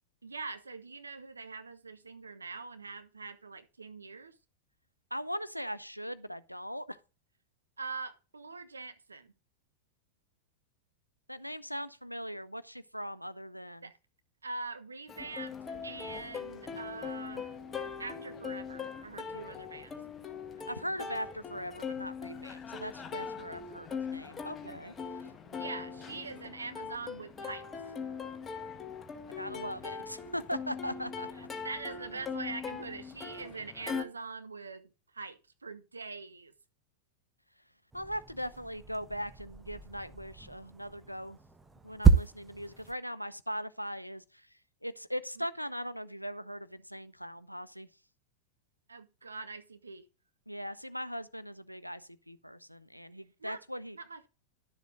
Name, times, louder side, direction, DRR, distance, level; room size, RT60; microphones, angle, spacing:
voice 1, 0.2-4.4 7.8-9.3 13.8-13.9 14.4-17.5 18.0-20.0 25.5-27.6 31.4-36.5 45.4-45.5 48.9-50.1 53.4-53.6 53.9-54.3, right 4 dB, 75° right, 1.2 m, -43 dB
voice 2, 5.1-7.0 11.3-13.9 20.7-25.3 29.4-31.3 37.9-41.4 41.8-44.5 44.8-47.9 50.5-54.0, equal, 90° left, 0.7 m, -40 dB
Plucked string instrument, 15.1-34.0, left 6 dB, 20° left, 1.6 m, -41 dB
sound 1, 37.9-42.9, right 6 dB, 15° right, 1.2 m, -30 dB
12.0 x 7.3 x 3.8 m
figure-of-eight pair, 90°, 0 cm